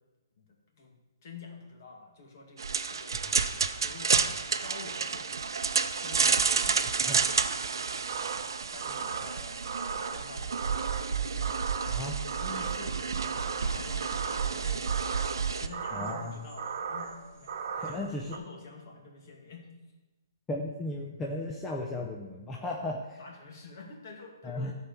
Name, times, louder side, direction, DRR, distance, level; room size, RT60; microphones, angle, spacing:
voice 1, 0.4-1.0 1.2-3.4 3.8-8.5 8.7-10.7 11.0-11.8 12.4-14.9 15.3-19.7 23.2-24.7, left 3 dB, 40° left, 0 dB, 2.2 m, -48 dB
sound 1, 2.6-15.7, right 5 dB, 80° right, 0.6 m, -30 dB
sound 2, 8.1-18.4, right 6 dB, 45° right, 0.9 m, -38 dB
voice 2, 11.9-12.2 15.9-16.3 17.7-18.3 20.5-23.2 24.4-24.7, left 2 dB, 10° left, -1 dB, 0.6 m, -35 dB
13.0 x 4.5 x 6.7 m, 1.2 s
hypercardioid pair, 170°, 2 cm